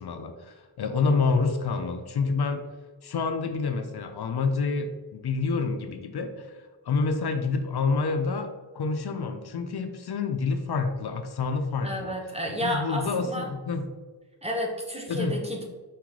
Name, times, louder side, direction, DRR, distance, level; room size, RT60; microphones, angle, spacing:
voice 1, 0.0-2.6 3.0-12.2 12.6-13.9 15.1-15.4, left 4 dB, 65° left, 7 dB, 0.5 m, -28 dB
voice 2, 11.8-13.5 14.4-15.6, equal, 15° right, 0 dB, 0.9 m, -31 dB
4.5 x 3.7 x 3.1 m, 1.3 s
wide cardioid pair, 65°, 42 cm